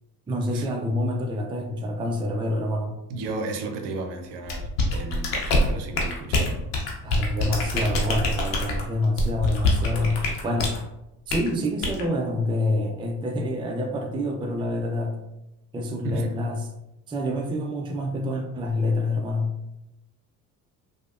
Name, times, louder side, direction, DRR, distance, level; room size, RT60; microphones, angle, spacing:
voice 1, 0.3-3.0 7.0-10.8 11.3-15.2 15.7-16.7 17.1-19.5, left 1 dB, 10° right, 2 dB, 0.4 m, -27 dB
voice 2, 3.1-6.6 16.0-16.3, right 3 dB, 60° right, 4 dB, 0.6 m, -34 dB
sound 1, 4.5-10.8 11.3-11.5 11.8-12.0, left 2 dB, 85° left, 0.7 m, -24 dB
3.2 x 2.1 x 2.5 m, 0.91 s
hypercardioid pair, 60°, 46 cm